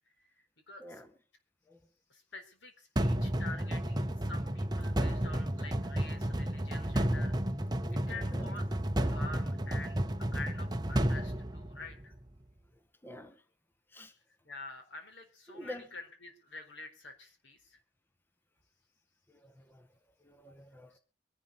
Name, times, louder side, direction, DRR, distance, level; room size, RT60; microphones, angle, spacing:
voice 1, 0.7-1.0 2.1-7.4 7.9-10.0 10.3-12.1 14.4-17.8 20.9-21.0, left 3 dB, 80° left, 7 dB, 4.4 m, -47 dB
sound 1, 3.0-12.1, right 1 dB, 20° right, 1.0 m, -32 dB
voice 2, 7.7-8.6 13.0-13.4 13.9-14.1 15.5-15.9 19.3-19.9 20.2-21.0, left 1 dB, 10° left, 9 dB, 1.1 m, -48 dB
23.5 x 11.5 x 4.2 m, 0.35 s
head